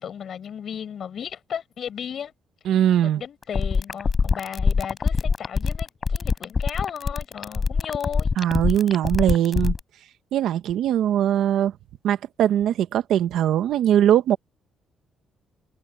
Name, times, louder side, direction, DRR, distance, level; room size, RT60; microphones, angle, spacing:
voice 1, 0.0-2.3 3.0-8.3, left 8 dB, 60° left, 7.6 m, -34 dB
voice 2, 2.6-3.2 8.4-9.7 10.3-11.7 12.0-14.4, right 10 dB, 80° right, 1.3 m, -21 dB
sound 1, 3.4-9.8, left 5 dB, 35° left, 7.6 m, -23 dB
cardioid pair, 90°, 0 cm